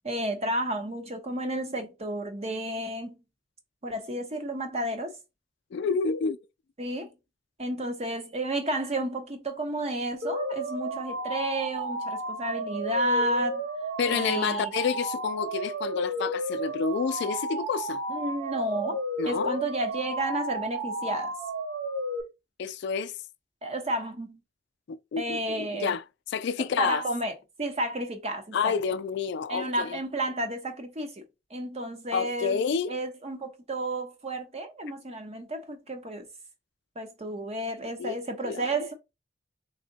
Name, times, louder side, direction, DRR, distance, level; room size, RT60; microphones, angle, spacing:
voice 1, 0.0-3.1 3.8-5.2 6.8-7.1 7.6-13.6 14.1-14.7 18.1-21.3 23.6-24.4 25.2-25.9 26.6-28.7 29.5-31.2 31.5-32.6 32.9-36.3 37.0-38.9, right 1 dB, 35° right, 0.8 m, -32 dB
voice 2, 5.7-6.4 14.0-18.0 19.2-19.6 22.6-23.1 24.9-26.0 26.3-27.0 28.5-30.0 32.1-32.9 38.0-38.2 38.4-38.7, left 5 dB, 65° left, 0.3 m, -29 dB
sound 1, 10.2-22.2, right 1 dB, 70° right, 1.1 m, -33 dB
3.6 x 2.1 x 3.8 m
head